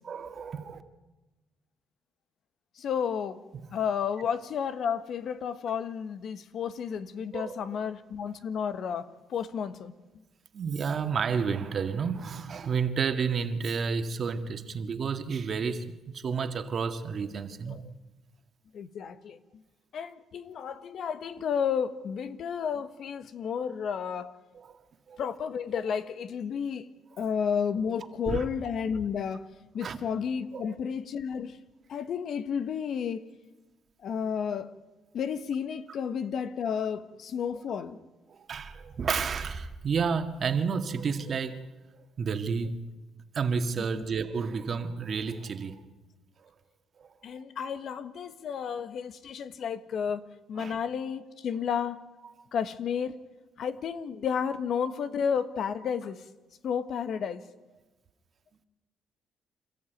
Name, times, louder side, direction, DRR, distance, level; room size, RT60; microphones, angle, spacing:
voice 1, 0.0-0.8 3.5-3.6 7.3-7.5 10.5-17.8 24.5-24.8 25.1-25.2 28.3-28.4 29.8-30.0 30.5-30.7 38.3-41.7 42.2-42.8 43.3-45.8 46.4-46.5 47.0-47.1 50.6-50.8, right 5 dB, 50° right, 1.9 m, -31 dB
voice 2, 2.8-3.4 3.7-9.0 9.3-9.9 17.7-17.8 18.7-19.4 19.9-24.3 25.2-26.9 27.2-29.5 29.7-31.6 31.9-33.3 34.0-34.7 35.1-38.0 43.8-44.0 47.2-50.2 50.5-52.0 52.5-53.2 53.6-56.2 56.6-57.4, left 7 dB, 65° left, 1.4 m, -32 dB
27.5 x 14.0 x 9.3 m
cardioid pair, 90°, 0 cm